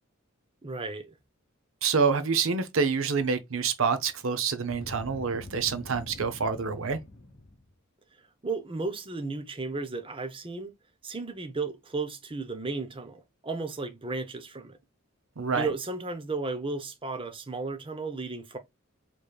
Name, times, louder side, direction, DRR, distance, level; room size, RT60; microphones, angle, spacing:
voice 1, 0.6-1.1 8.4-10.7 11.0-14.8 15.5-18.6, right 3 dB, 25° right, 0.7 m, -34 dB
voice 2, 1.8-7.0 15.4-15.7, right 5 dB, 65° right, 0.7 m, -27 dB
Boom, 4.7-7.7, left 1 dB, 40° left, 1.4 m, -45 dB
4.9 x 3.0 x 2.3 m
head